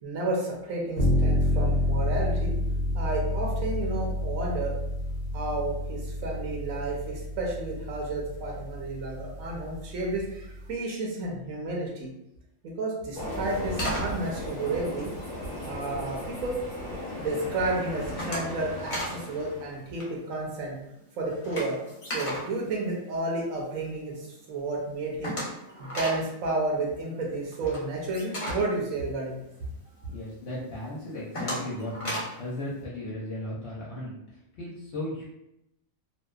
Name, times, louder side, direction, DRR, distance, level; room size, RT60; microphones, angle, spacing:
voice 1, 0.0-2.5 2.9-4.7 5.3-12.1 12.6-15.1 15.7-16.6 17.1-20.8 21.2-21.8 22.1-25.4 25.8-29.4, right 2 dB, 80° right, -2 dB, 1.0 m, -31 dB
sound 1, 1.0-10.7, left 1 dB, 60° right, 0.4 m, -29 dB
Train, 13.1-19.9, equal, 20° left, 0.9 m, -36 dB
sound 2, 13.2-15.8 16.2-16.7 17.1-17.5 17.8-19.2 19.5-19.6 19.9-23.7 24.1-24.2 24.4-24.5 24.7-29.8 30.2-30.3 30.8-32.5, equal, 40° left, 0.5 m, -36 dB
voice 2, 30.1-35.3, left 1 dB, 65° left, -5 dB, 0.8 m, -36 dB
2.6 x 2.1 x 2.3 m, 0.83 s
omnidirectional pair, 1.4 m